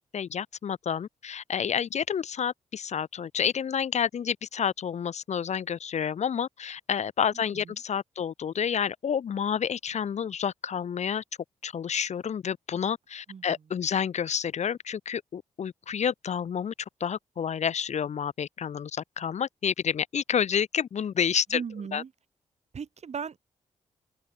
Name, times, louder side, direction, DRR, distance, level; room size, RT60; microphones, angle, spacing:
voice 1, 0.0-11.2 11.6-16.7 17.0-21.6 21.9-22.0, left 8 dB, 60° left, 0.8 m, -29 dB
voice 2, 21.5-22.1 22.7-23.4, right 6 dB, 55° right, 2.1 m, -37 dB
open air
supercardioid pair, 55°, 13 cm